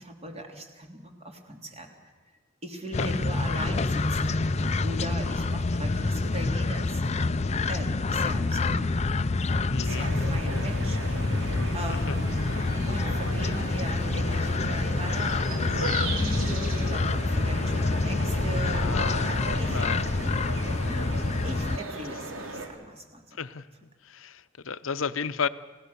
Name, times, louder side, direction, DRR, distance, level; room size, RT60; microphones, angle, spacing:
voice 1, 0.0-1.9 2.6-7.0 7.7-8.9 9.8-11.4 11.7-12.2 12.9-19.8 21.4-23.4, right 1 dB, 30° right, 3 dB, 3.2 m, -39 dB
sound 1, 2.9-21.8, left 3 dB, 35° left, 0.6 m, -27 dB
voice 2, 9.7-10.1 11.9-12.2 18.7-19.5 19.7-20.0 23.3-23.7 24.0-25.5, left 6 dB, 80° left, 14 dB, 0.8 m, -33 dB
sound 2, 9.9-22.7, right 2 dB, 80° right, 3.1 m, -36 dB
29.5 x 16.5 x 6.9 m, 1.4 s
head